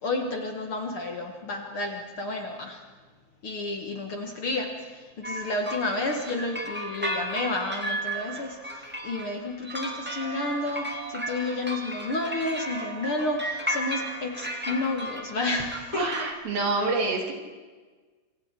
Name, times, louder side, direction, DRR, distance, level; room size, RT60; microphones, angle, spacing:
voice 1, 0.0-2.8 3.4-16.1, left 2 dB, 50° left, 3 dB, 2.0 m, -31 dB
sound 1, 5.2-16.3, right 1 dB, 10° right, 0.7 m, -34 dB
voice 2, 15.9-17.3, right 3 dB, 80° right, 1 dB, 4.7 m, -27 dB
27.5 x 24.0 x 4.5 m, 1.4 s
omnidirectional pair, 4.1 m